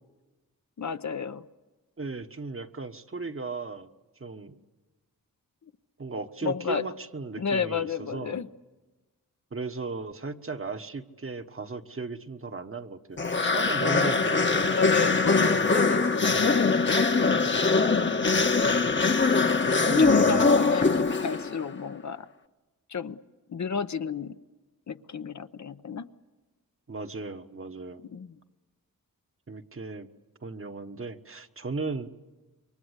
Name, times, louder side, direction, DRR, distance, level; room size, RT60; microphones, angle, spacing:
voice 1, 0.8-1.5 6.4-6.9 7.4-8.5 13.5-14.0 14.7-17.6 20.0-22.3 22.9-23.2 23.5-24.4 24.9-26.1 28.1-28.4, left 6 dB, 55° left, 10 dB, 0.8 m, -32 dB
voice 2, 2.0-3.9 4.2-4.6 6.0-8.4 9.5-14.8 15.4-15.7 16.3-16.7 19.8-20.6 26.9-28.0 29.5-30.1 30.4-32.1, right 3 dB, 40° right, 7 dB, 1.3 m, -36 dB
sound 1, 13.2-21.6, left 4 dB, 35° left, 1.1 m, -22 dB
27.5 x 23.0 x 8.2 m, 1.2 s
cardioid pair, 60°, 34 cm